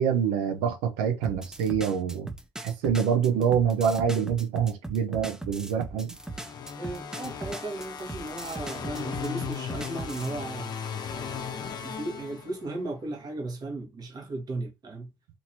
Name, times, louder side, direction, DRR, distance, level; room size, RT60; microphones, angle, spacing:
voice 1, 0.0-2.3 2.6-6.1, right 7 dB, 75° right, 0.7 m, -26 dB
sound 1, 1.2-10.3, right 2 dB, 5° right, 0.5 m, -39 dB
sound 2, 6.2-12.9, left 7 dB, 45° left, 0.6 m, -37 dB
voice 2, 6.8-10.7 11.1-15.1, right 2 dB, 40° right, 1.3 m, -36 dB
2.8 x 2.8 x 2.7 m
hypercardioid pair, 70°, 10 cm